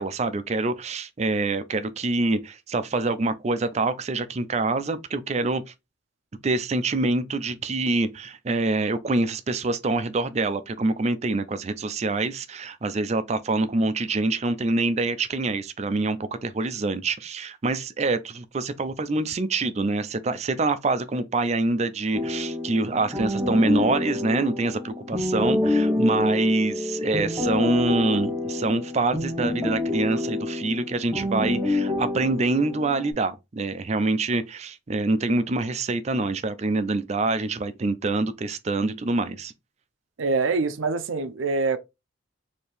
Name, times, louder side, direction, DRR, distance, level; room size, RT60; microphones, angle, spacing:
voice 1, 0.0-5.6 6.4-39.5, right 2 dB, 35° right, 0.4 m, -25 dB
sound 1, 22.1-33.1, left 2 dB, 15° right, 1.1 m, -27 dB
voice 2, 40.2-41.8, right 3 dB, 85° right, 0.6 m, -24 dB
4.4 x 2.8 x 3.3 m
head